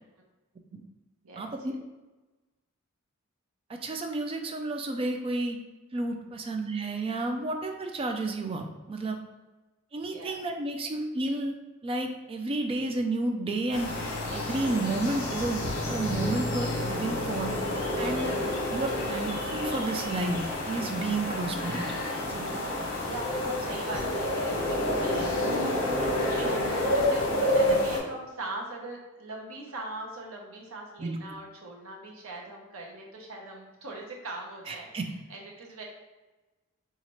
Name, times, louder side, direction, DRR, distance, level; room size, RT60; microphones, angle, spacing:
voice 1, 1.2-1.8 10.1-10.4 22.6-22.7 23.0-34.9 35.3-35.8, right 2 dB, 75° right, -1 dB, 0.8 m, -40 dB
voice 2, 3.7-5.6 5.9-9.2 9.9-11.5 11.8-13.9 14.3-17.5 18.0-18.3 18.7-22.0 22.3-22.6 27.6-27.7 31.0-31.2 34.7-35.1, right 2 dB, 25° right, 4 dB, 0.3 m, -31 dB
sound 1, 13.7-28.0, left 1 dB, 70° left, 0.9 m, -29 dB
4.1 x 2.4 x 3.0 m, 1.2 s
head